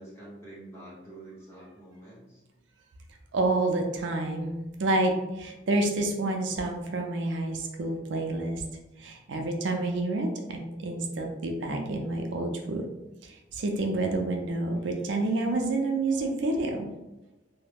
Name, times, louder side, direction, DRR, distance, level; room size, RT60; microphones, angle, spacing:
voice 1, 0.0-2.4, right 1 dB, 15° left, -8 dB, 0.9 m, -47 dB
voice 2, 3.3-8.6 9.0-12.9 13.2-16.9, right 2 dB, 85° right, 3 dB, 0.4 m, -29 dB
2.3 x 2.1 x 3.3 m, 0.98 s
head